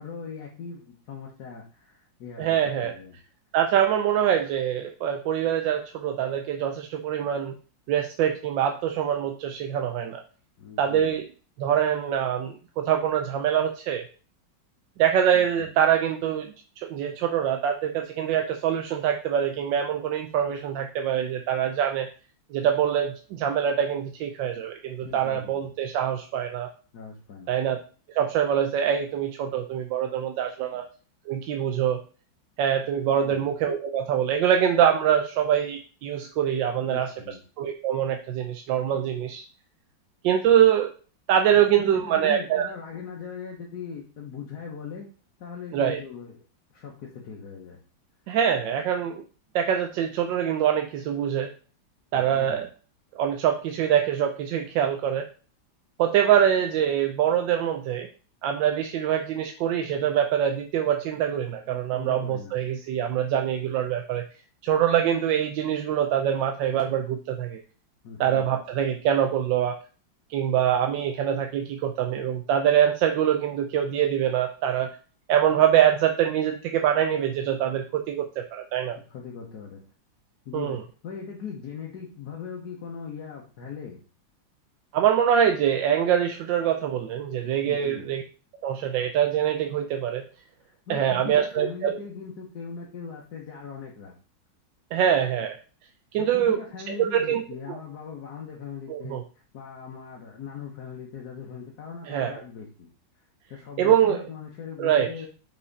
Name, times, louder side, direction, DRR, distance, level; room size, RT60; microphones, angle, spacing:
voice 1, 0.0-3.2 10.6-11.2 15.3-15.7 25.0-25.7 26.9-27.6 30.7-30.8 33.2-33.5 36.8-37.4 41.5-45.1 45.4-46.4 46.7-47.8 52.1-52.7 61.7-62.6 68.0-68.6 78.9-79.8 80.4-84.0 87.6-88.1 90.6-94.1 96.1-99.2 99.5-102.9 103.5-105.3, left 6 dB, 60° left, -2 dB, 1.5 m, -40 dB
voice 2, 2.4-2.9 3.5-7.5 7.9-10.2 10.8-11.2 11.6-14.1 15.0-16.5 16.8-22.1 22.5-26.7 27.5-27.8 28.1-30.8 31.3-32.0 32.6-37.1 37.6-39.4 40.2-40.9 41.3-42.7 45.7-46.0 48.3-49.2 49.5-51.5 52.1-52.7 53.2-55.3 56.0-58.1 58.4-64.2 64.6-67.6 68.2-69.8 70.3-74.9 75.3-78.2 78.5-79.0 80.5-80.8 84.9-88.2 88.6-90.2 90.9-92.0 94.9-95.6 96.1-96.6 96.9-97.4 97.7-97.8 98.9-99.2 102.1-102.3 103.8-104.2 104.8-105.1, right 9 dB, 75° right, 5 dB, 1.3 m, -24 dB
5.6 x 4.9 x 4.0 m, 0.38 s
omnidirectional pair, 2.1 m